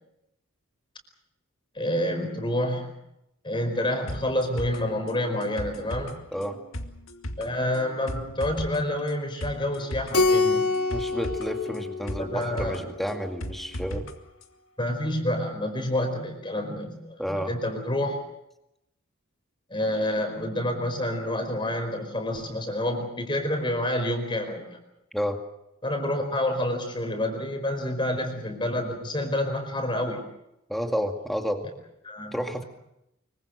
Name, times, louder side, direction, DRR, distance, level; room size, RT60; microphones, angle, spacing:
voice 1, 1.7-2.9 3.4-6.2 7.4-10.7 12.3-12.8 14.8-18.2 19.7-24.8 25.8-30.2 32.0-32.3, left 1 dB, 20° left, 5 dB, 4.8 m, -28 dB
sound 1, 4.1-14.1 14.4-14.5, equal, 65° left, 2.3 m, -37 dB
Keyboard (musical), 10.1-12.8, left 3 dB, 90° left, 2.6 m, -25 dB
voice 2, 10.9-14.1 17.2-17.5 25.1-25.4 30.7-31.7 32.3-32.6, equal, ahead, 3 dB, 2.2 m, -30 dB
25.0 x 24.0 x 6.5 m, 0.83 s
head